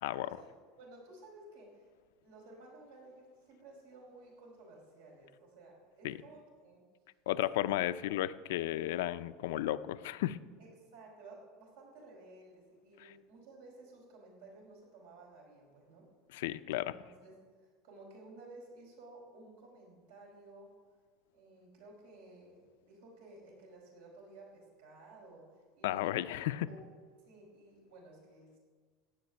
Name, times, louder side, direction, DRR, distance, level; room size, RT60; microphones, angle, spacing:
voice 1, 0.2-1.8 2.2-6.8 10.6-16.1 16.8-17.4 17.8-20.7 21.3-26.3 26.7-26.9 27.2-28.6, right 2 dB, 85° right, -1 dB, 4.9 m, -55 dB
voice 2, 7.3-10.4 16.3-17.0 25.8-26.7, left 14 dB, 85° left, 13 dB, 0.5 m, -33 dB
15.5 x 5.2 x 9.5 m, 1.6 s
supercardioid pair, 165°, 0 cm